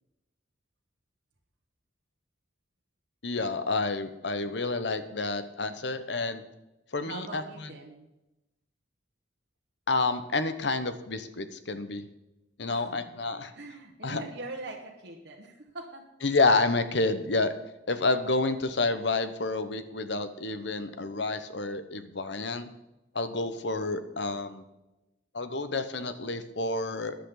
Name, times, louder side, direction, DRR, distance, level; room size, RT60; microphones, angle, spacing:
voice 1, 3.2-6.4 6.9-7.4 9.9-12.0 12.6-13.5 14.0-14.2 16.2-17.5 17.9-22.7 23.1-24.6 25.3-27.2, left 3 dB, 70° left, 11 dB, 1.1 m, -29 dB
voice 2, 7.0-8.1 12.7-13.1 13.5-16.0, right 2 dB, 60° right, -3 dB, 1.6 m, -42 dB
14.5 x 10.0 x 3.9 m, 0.96 s
head